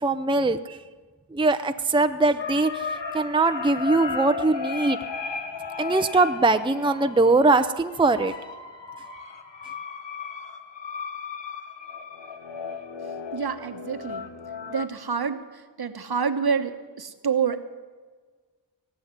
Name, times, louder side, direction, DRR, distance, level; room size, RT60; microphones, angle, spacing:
voice 1, 0.0-0.8 1.3-2.8 3.1-5.0 5.8-8.3, right 3 dB, 10° right, 9 dB, 0.6 m, -21 dB
sound 1, 2.4-14.9, left 5 dB, 75° left, 1.3 m, -35 dB
voice 2, 13.3-14.3 14.7-15.4 15.8-17.6, right 6 dB, 55° right, 9 dB, 1.2 m, -27 dB
18.5 x 6.4 x 9.7 m, 1.5 s
cardioid pair, 40°, 45 cm